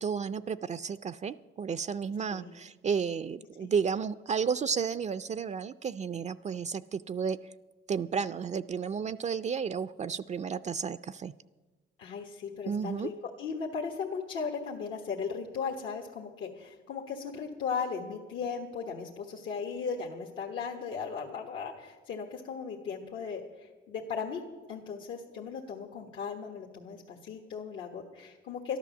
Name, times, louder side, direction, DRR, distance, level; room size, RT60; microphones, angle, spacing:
voice 1, 0.0-7.4 7.9-11.3 12.7-13.1, right 6 dB, 35° right, 13 dB, 0.4 m, -32 dB
voice 2, 12.0-13.1 13.4-24.4 24.7-28.8, left 6 dB, 80° left, 0 dB, 1.4 m, -37 dB
12.5 x 11.0 x 7.0 m, 1.2 s
cardioid pair, 90°, 20 cm